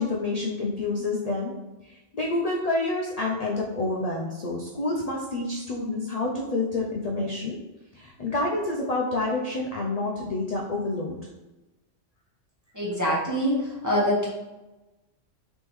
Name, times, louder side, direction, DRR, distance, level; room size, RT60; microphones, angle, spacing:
voice 1, 0.0-1.5 1.8-7.6 7.9-11.2, left 2 dB, 50° left, -2 dB, 0.4 m, -28 dB
voice 2, 12.7-14.3, equal, 15° right, -5 dB, 1.0 m, -25 dB
4.1 x 3.5 x 3.1 m, 1.0 s
omnidirectional pair, 1.3 m